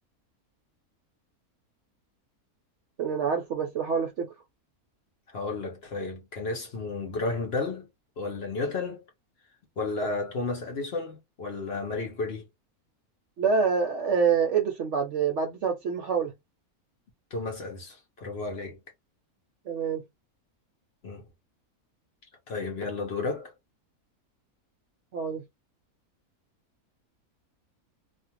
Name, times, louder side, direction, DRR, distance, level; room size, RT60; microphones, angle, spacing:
voice 1, 3.0-4.3 13.4-16.3 19.7-20.0 25.1-25.4, right 6 dB, 65° right, 0.7 m, -26 dB
voice 2, 5.3-7.9 8.2-9.0 9.8-12.5 17.3-18.8 21.0-21.2 22.5-23.5, left 3 dB, 50° left, 0.8 m, -32 dB
2.5 x 2.4 x 2.8 m
omnidirectional pair, 1.6 m